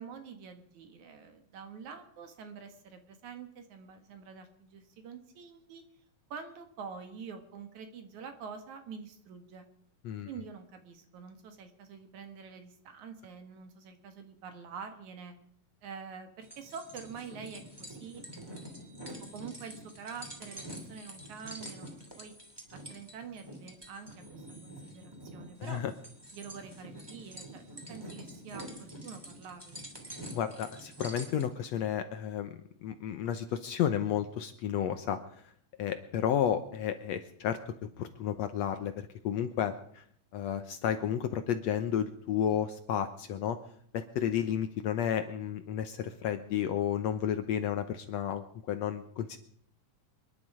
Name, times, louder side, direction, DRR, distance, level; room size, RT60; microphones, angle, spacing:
voice 1, 0.0-5.8 6.3-9.7 10.3-15.4 15.8-18.2 19.2-22.3 22.7-25.8 26.3-29.9, right 6 dB, 65° right, 7 dB, 2.9 m, -46 dB
sound 1, 16.4-31.5, right 1 dB, 10° right, 2.7 m, -46 dB
voice 2, 25.6-25.9 30.3-32.6 32.8-35.2 35.8-38.9 39.2-40.0 40.3-43.6 43.9-49.4, left 9 dB, 70° left, 9 dB, 1.8 m, -32 dB
26.5 x 11.0 x 4.9 m, 0.64 s
omnidirectional pair, 3.7 m